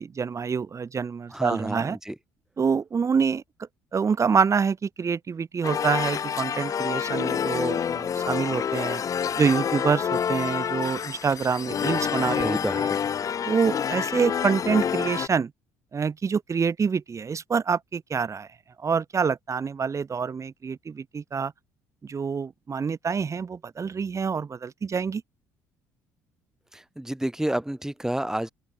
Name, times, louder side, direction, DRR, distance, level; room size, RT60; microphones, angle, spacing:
voice 1, 0.0-2.0 2.6-3.4 3.9-9.0 9.3-12.9 13.5-15.5 15.9-18.5 18.8-21.5 22.0-25.2, right 6 dB, 35° right, 6.4 m, -26 dB
voice 2, 1.3-2.2 12.4-13.0 26.7-28.5, right 1 dB, 5° right, 6.4 m, -29 dB
sound 1, 5.6-15.3, left 8 dB, 40° left, 0.8 m, -28 dB
open air
hypercardioid pair, 65°, 9 cm